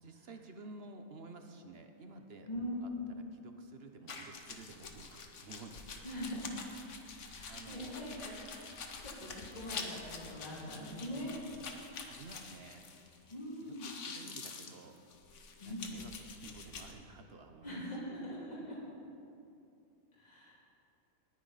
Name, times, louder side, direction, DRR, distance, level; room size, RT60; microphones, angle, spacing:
voice 1, 0.0-2.5 2.8-6.5 7.5-8.1 12.0-12.9 13.6-15.0 15.6-17.8, right 3 dB, 50° right, 6 dB, 0.9 m, -52 dB
voice 2, 2.5-3.1 6.0-6.5 7.3-11.4 13.3-13.9 15.6-15.9 17.6-18.8 20.2-20.6, left 1 dB, 30° left, -6 dB, 2.8 m, -42 dB
sound 1, 4.1-13.3 13.6-16.9, left 4 dB, 60° left, 1.3 m, -47 dB
20.0 x 9.7 x 4.1 m, 2.6 s
omnidirectional pair, 1.5 m